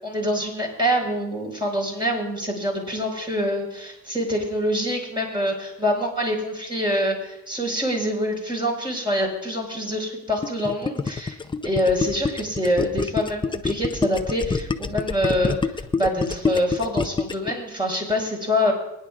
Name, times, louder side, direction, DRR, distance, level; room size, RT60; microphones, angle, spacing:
voice 1, 0.0-11.4 11.6-15.6 15.9-18.7, equal, 15° right, -1 dB, 4.9 m, -25 dB
Gurgling, 10.4-17.5, left 4 dB, 15° left, 0.6 m, -26 dB
24.0 x 10.0 x 2.5 m, 0.85 s
cardioid pair, 90°, 30 cm